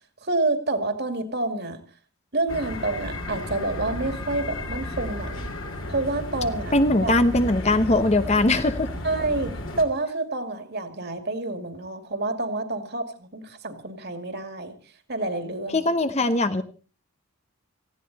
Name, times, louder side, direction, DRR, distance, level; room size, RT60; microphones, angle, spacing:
voice 1, 0.2-1.8 2.3-5.5 5.9-6.8 7.0-7.2 9.0-14.7 15.1-15.9, right 2 dB, 50° right, 7 dB, 2.4 m, -28 dB
sound 1, 2.5-9.8, left 1 dB, 60° left, 2.9 m, -33 dB
voice 2, 6.7-8.9 15.7-16.6, left 2 dB, 30° left, 10 dB, 0.9 m, -21 dB
18.0 x 15.5 x 4.1 m, 0.37 s
head